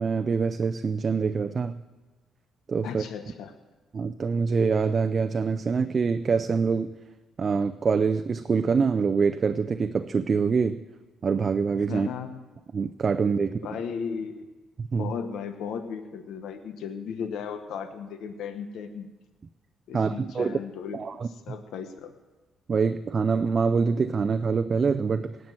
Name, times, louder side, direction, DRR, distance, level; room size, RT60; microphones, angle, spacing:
voice 1, 0.0-1.8 2.7-3.0 3.9-6.9 7.4-10.8 11.2-12.1 12.7-13.6 14.9-15.1 19.9-20.6 20.9-21.6 22.7-25.4, right 5 dB, 40° right, 8 dB, 0.5 m, -25 dB
voice 2, 2.8-3.5 11.9-12.4 13.6-14.4 15.0-19.1 19.9-21.2 21.5-22.1, left 6 dB, 80° left, 8 dB, 0.9 m, -35 dB
17.5 x 5.9 x 7.6 m, 1.2 s
cardioid pair, 90°, 0 cm